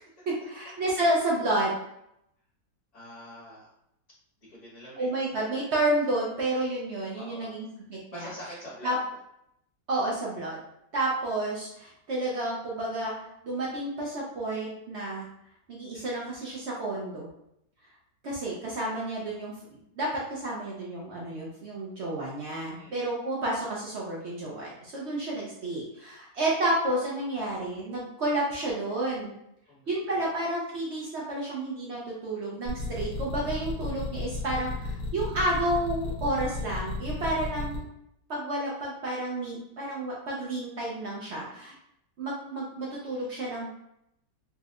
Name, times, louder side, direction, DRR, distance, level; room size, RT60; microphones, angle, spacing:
voice 1, 0.3-1.8 5.0-8.3 8.8-9.0 9.9-10.6 10.9-13.1 13.4-15.3 15.7-17.3 18.2-19.6 20.0-29.4 29.9-37.9 38.3-41.7 42.2-43.7, right 1 dB, 75° right, -4 dB, 0.6 m, -30 dB
voice 2, 2.9-3.7 4.5-5.1 7.1-7.6 8.1-9.0 22.7-23.0 29.7-30.4 41.3-41.6, equal, 50° left, -7 dB, 1.4 m, -45 dB
sound 1, 32.7-37.8, left 2 dB, 65° left, 1.3 m, -33 dB
4.3 x 2.1 x 2.4 m, 0.78 s
omnidirectional pair, 1.9 m